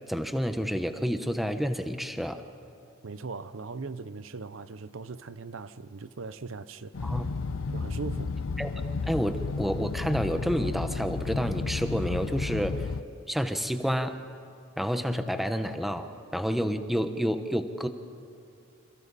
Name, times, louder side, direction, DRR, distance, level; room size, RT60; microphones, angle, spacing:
voice 1, 0.1-2.4 7.0-7.3 8.6-8.7 9.1-12.8 13.3-14.2 14.8-17.9, equal, ahead, 7 dB, 1.0 m, -29 dB
voice 2, 3.0-6.9 7.7-8.3, right 3 dB, 70° right, 13 dB, 0.7 m, -39 dB
sound 1, 6.9-13.0, left 4 dB, 75° left, 0.6 m, -32 dB
29.0 x 27.5 x 4.2 m, 2.6 s
head